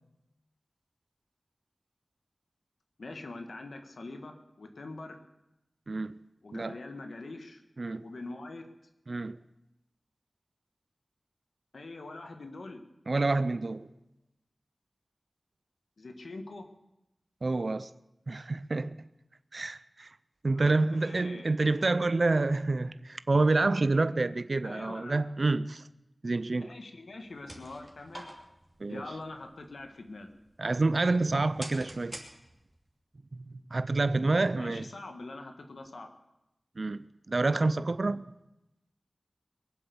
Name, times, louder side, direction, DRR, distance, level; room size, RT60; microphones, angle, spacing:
voice 1, 3.0-5.2 6.4-7.6 8.0-8.7 11.7-12.8 16.0-16.7 20.5-20.7 21.0-21.6 24.6-25.2 26.6-28.3 28.9-30.3 34.6-36.1, left 2 dB, 85° left, 1.6 m, -43 dB
voice 2, 5.9-6.2 6.5-6.8 7.8-8.1 9.1-9.4 13.1-13.9 17.4-17.9 18.3-19.0 19.5-20.2 20.4-25.8 26.2-26.7 28.8-29.0 30.6-32.2 33.3-33.4 33.7-34.8 36.8-38.3, right 3 dB, 60° right, 0.5 m, -28 dB
sound 1, 27.1-32.9, right 1 dB, 25° right, 2.8 m, -49 dB
22.5 x 7.9 x 7.1 m
wide cardioid pair, 70°, 0 cm